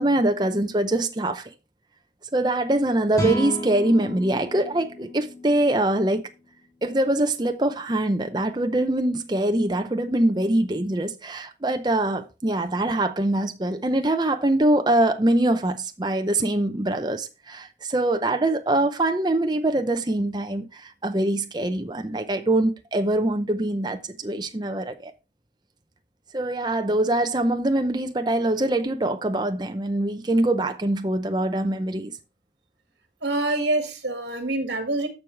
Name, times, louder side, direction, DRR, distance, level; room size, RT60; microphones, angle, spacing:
voice 1, 0.0-1.5 2.3-6.2 6.8-25.1 26.3-32.1, right 1 dB, 25° right, 0.6 m, -23 dB
sound 1, 3.1-6.4, equal, 20° left, 2.5 m, -32 dB
voice 2, 33.2-35.1, right 2 dB, 75° right, 2.0 m, -26 dB
14.0 x 4.8 x 3.3 m
head